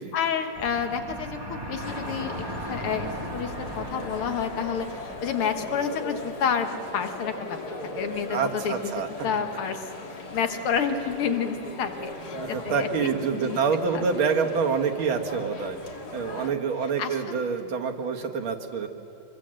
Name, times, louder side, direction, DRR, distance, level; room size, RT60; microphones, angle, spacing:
voice 1, 0.1-7.6 8.0-9.9 10.3-13.6 13.9-14.0 16.2-16.5 17.0-17.4, left 7 dB, 85° left, 7 dB, 2.2 m, -30 dB
sound 1, 0.5-6.1, equal, 10° right, 2.4 m, -37 dB
sound 2, 1.8-16.5, left 2 dB, 50° left, 2.3 m, -39 dB
voice 2, 8.3-9.1 12.3-15.8 16.1-18.9, right 5 dB, 70° right, 3 dB, 2.3 m, -27 dB
25.5 x 22.5 x 7.7 m, 2.9 s
omnidirectional pair, 2.3 m